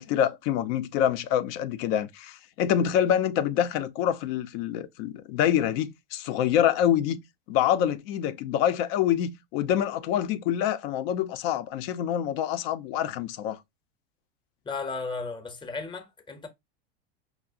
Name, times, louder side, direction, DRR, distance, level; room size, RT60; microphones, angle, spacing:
voice 1, 0.0-7.2 7.5-13.6, left 10 dB, 60° left, 0.6 m, -26 dB
voice 2, 14.6-16.5, left 4 dB, 15° left, 0.7 m, -35 dB
4.8 x 2.1 x 2.5 m
hypercardioid pair, 100°, 33 cm